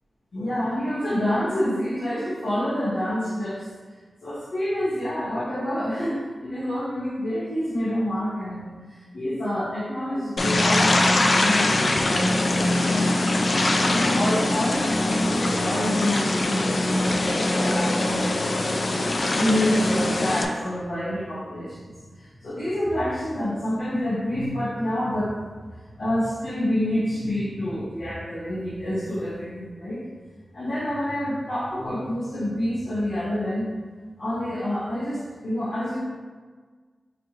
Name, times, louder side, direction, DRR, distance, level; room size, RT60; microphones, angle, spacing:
voice 1, 0.3-3.7 4.2-13.1 13.9-21.9 22.2-25.3 26.0-30.0 30.5-33.7 34.2-36.0, left 1 dB, 80° left, -10 dB, 1.0 m, -28 dB
sound 1, 10.4-20.4, left 2 dB, 55° left, 0.4 m, -22 dB
5.0 x 2.5 x 3.0 m, 1.5 s
cardioid pair, 40°, 0 cm